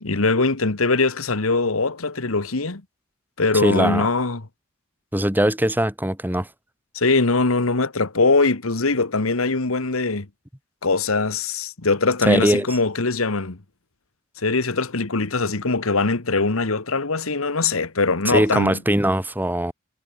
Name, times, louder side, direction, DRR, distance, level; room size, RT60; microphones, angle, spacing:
voice 1, 0.0-2.8 3.4-4.4 6.9-10.3 10.8-13.6 14.4-18.8, left 3 dB, 85° left, 1.6 m, -22 dB
voice 2, 3.6-4.1 5.1-6.5 12.3-12.7 18.2-19.7, right 1 dB, 10° right, 2.5 m, -20 dB
head